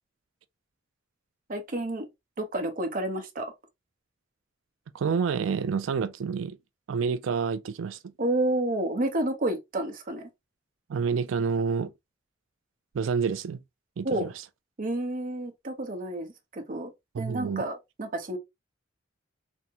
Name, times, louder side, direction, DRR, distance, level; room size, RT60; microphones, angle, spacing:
voice 1, 1.5-2.1 2.4-3.5 8.2-10.3 14.0-14.3 14.8-16.9 17.2-18.4, right 1 dB, 45° right, 0.7 m, -30 dB
voice 2, 4.9-6.6 6.9-8.0 10.9-11.9 12.9-13.6 14.0-14.3 17.1-17.6, right 6 dB, 80° right, 0.4 m, -28 dB
3.4 x 2.1 x 2.7 m
head